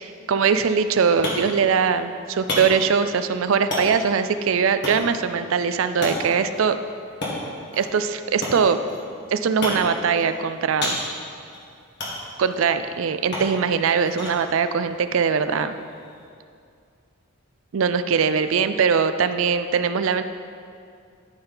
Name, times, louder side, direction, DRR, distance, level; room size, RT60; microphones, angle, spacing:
voice 1, 0.0-6.8 7.7-8.8 9.3-11.0 12.4-15.7 17.7-20.2, right 6 dB, 65° right, 11 dB, 0.4 m, -21 dB
sound 1, 0.6-16.2, left 1 dB, 55° left, 1.7 m, -34 dB
12.5 x 4.4 x 3.9 m, 2.3 s
head